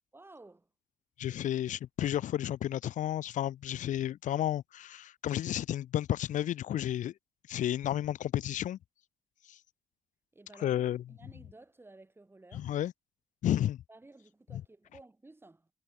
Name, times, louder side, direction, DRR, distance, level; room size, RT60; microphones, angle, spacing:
voice 1, 0.1-0.7 10.3-10.8 11.1-12.8 13.9-15.7, right 2 dB, 20° right, 2.1 m, -55 dB
voice 2, 1.2-7.1 7.5-8.8 9.5-9.6 10.6-11.0 12.5-12.9 13.4-13.8 14.5-14.6, left 12 dB, 90° left, 0.5 m, -32 dB
cardioid pair, 100°, 13 cm